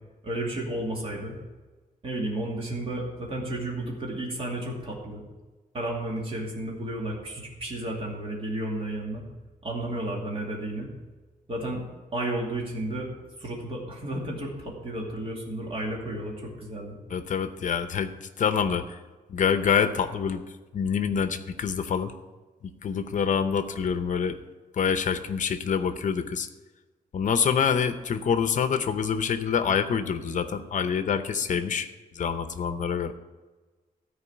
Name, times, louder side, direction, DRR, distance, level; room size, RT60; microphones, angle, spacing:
voice 1, 0.2-1.3 2.0-5.2 5.7-9.2 9.6-10.9 11.5-11.8 12.1-13.1 13.4-17.0, right 1 dB, 40° right, -2 dB, 2.5 m, -32 dB
voice 2, 17.1-19.0 19.3-20.4 20.7-22.1 22.8-24.4 24.7-26.5 27.1-31.9 32.1-33.1, left 7 dB, 55° left, 10 dB, 0.8 m, -26 dB
13.0 x 4.7 x 8.7 m, 1.3 s
wide cardioid pair, 170°, 15 cm